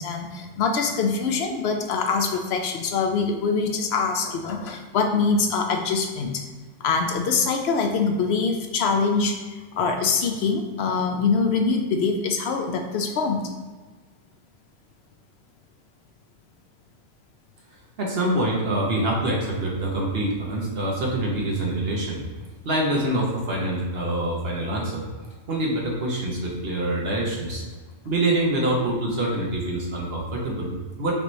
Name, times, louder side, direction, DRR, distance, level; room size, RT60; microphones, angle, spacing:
voice 1, 0.0-6.4 6.8-9.3 9.8-13.4, left 4 dB, 65° left, 3 dB, 0.7 m, -24 dB
voice 2, 18.0-22.2 22.6-25.0 25.5-27.6 28.0-31.1, right 1 dB, 55° right, -2 dB, 1.0 m, -25 dB
5.2 x 2.9 x 3.1 m, 1.4 s
omnidirectional pair, 1.4 m